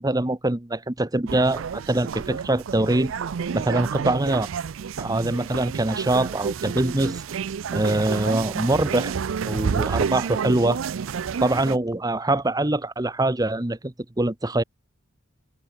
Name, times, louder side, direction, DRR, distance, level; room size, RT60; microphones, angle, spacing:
voice 1, 0.0-3.1 3.5-4.5 5.0-7.2 7.7-9.1 9.5-10.8 11.4-14.6, right 2 dB, 20° right, 1.0 m, -23 dB
sound 1, 1.3-11.8, right 6 dB, 70° right, 0.4 m, -30 dB
head